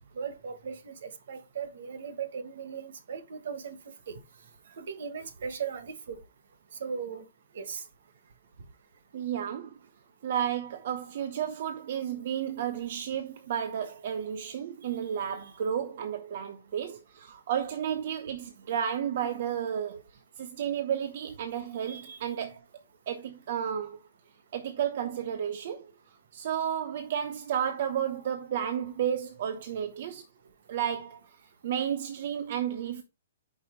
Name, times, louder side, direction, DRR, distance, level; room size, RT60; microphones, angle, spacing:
voice 1, 0.2-3.8 4.1-4.2 4.8-6.2 6.8-7.2 7.5-7.8 21.9-22.2 31.8-31.9, right 6 dB, 70° right, 1.4 m, -38 dB
voice 2, 9.1-9.7 10.2-20.0 20.4-22.6 23.1-24.0 24.5-25.9 26.3-30.2 30.7-31.2 31.6-33.0, right 9 dB, 55° right, 0.9 m, -32 dB
5.5 x 4.6 x 4.6 m
hypercardioid pair, 155°, 0 cm